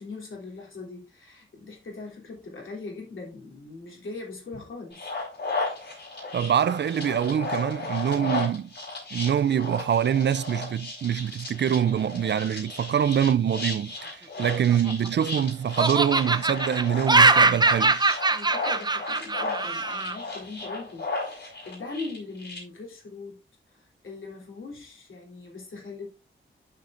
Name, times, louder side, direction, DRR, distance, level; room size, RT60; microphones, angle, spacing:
voice 1, 0.0-5.1 8.1-8.5 18.3-23.4 23.7-26.1, left 3 dB, 75° left, 3.2 m, -41 dB
sound 1, 4.9-22.6, left 3 dB, 60° left, 4.9 m, -35 dB
voice 2, 6.3-8.7 9.1-18.0, right 9 dB, 60° right, 0.4 m, -25 dB
Laughter, 14.6-15.4 15.8-20.1, right 3 dB, 20° right, 0.6 m, -22 dB
12.0 x 5.7 x 2.5 m
wide cardioid pair, 95°, 21 cm